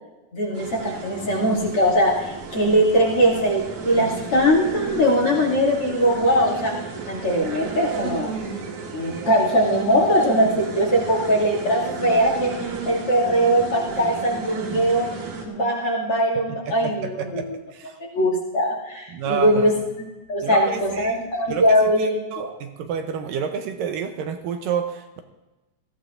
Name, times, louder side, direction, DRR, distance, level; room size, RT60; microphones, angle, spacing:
voice 1, 0.3-6.7 7.1-8.3 8.9-15.1 15.4-17.4 18.1-19.7 20.0-22.5, equal, 40° left, -4 dB, 2.9 m, -21 dB
sound 1, 0.5-15.5, right 4 dB, 60° right, 3.0 m, -33 dB
voice 2, 16.7-18.0 19.1-19.7 20.4-21.2 21.5-25.2, right 7 dB, 75° right, 6 dB, 2.3 m, -29 dB
20.0 x 14.5 x 2.5 m, 1.1 s
omnidirectional pair, 4.1 m